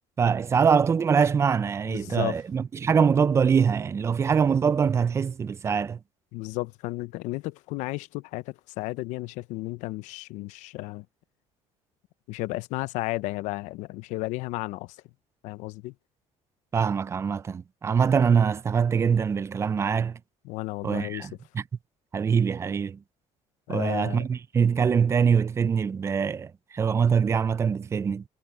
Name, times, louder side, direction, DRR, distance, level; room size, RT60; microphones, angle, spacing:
voice 1, 0.2-6.0 16.7-20.2 20.8-21.6 22.1-23.0 23.7-28.2, right 6 dB, 25° right, 0.4 m, -23 dB
voice 2, 1.8-2.4 6.3-11.1 12.3-15.0 15.4-15.9 20.4-21.3 23.7-24.3, left 20 dB, 85° left, 0.6 m, -33 dB
cardioid pair, 140°, 12 cm